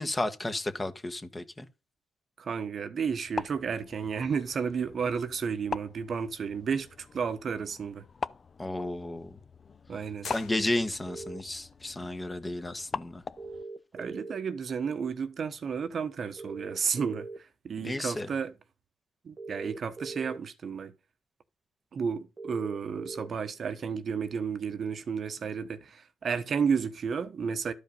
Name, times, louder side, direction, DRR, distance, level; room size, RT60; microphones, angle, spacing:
voice 1, 0.0-1.7 8.6-9.4 10.2-13.2 17.8-18.3, left 2 dB, 20° left, 1.3 m, -33 dB
voice 2, 2.4-8.0 9.9-10.3 13.9-18.5 19.2-20.9 21.9-27.7, right 6 dB, 50° right, 1.1 m, -32 dB
sound 1, 3.1-13.6, left 5 dB, 35° left, 0.5 m, -42 dB
sound 2, 10.2-11.3, left 8 dB, 85° left, 1.7 m, -46 dB
sound 3, 11.1-11.4 13.4-14.4 16.4-17.4 19.4-20.4 22.4-23.3, right 3 dB, 30° right, 1.4 m, -41 dB
12.0 x 5.1 x 5.4 m
cardioid pair, 90°, 0 cm